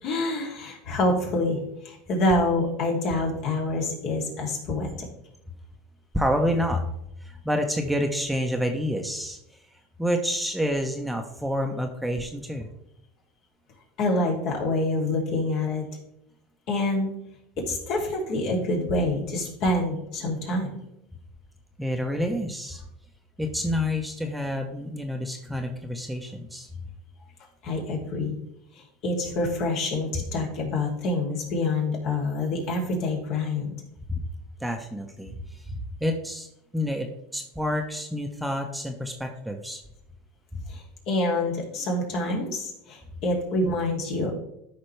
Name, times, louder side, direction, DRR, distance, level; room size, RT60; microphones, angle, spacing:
voice 1, 0.0-4.9 14.0-15.9 16.7-17.1 17.6-20.7 27.6-28.4 29.0-33.7 40.7-44.3, left 2 dB, 55° left, -1 dB, 3.0 m, -26 dB
voice 2, 6.1-6.8 7.2-9.4 10.0-12.7 21.8-22.8 23.4-26.7 34.1-34.2 34.6-35.3 35.7-36.5 36.7-39.8 40.5-40.6, equal, 5° right, 3 dB, 1.1 m, -28 dB
13.0 x 5.1 x 3.4 m, 0.81 s
hypercardioid pair, 100°, 0 cm